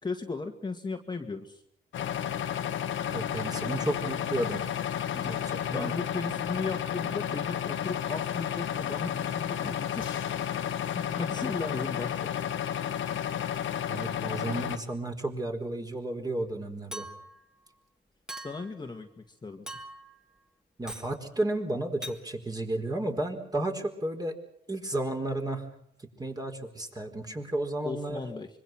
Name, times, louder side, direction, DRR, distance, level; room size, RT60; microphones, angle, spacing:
voice 1, 0.0-1.6 5.1-5.4 5.7-10.2 10.6-12.3 18.4-19.7 27.8-28.5, left 3 dB, 20° left, 4 dB, 2.0 m, -36 dB
sound 1, 1.9-14.8, left 9 dB, 75° left, 1.8 m, -32 dB
voice 2, 3.1-4.6 5.2-5.9 13.9-17.1 20.8-24.4 24.7-25.8 26.2-28.3, right 1 dB, 20° right, 4 dB, 4.7 m, -33 dB
Chink clink, 16.9-17.4 18.3-18.8 19.7-20.2 20.9-21.1 22.0-22.2, right 1 dB, 5° right, 2.6 m, -41 dB
25.5 x 23.0 x 6.1 m, 0.69 s
cardioid pair, 90°, 20 cm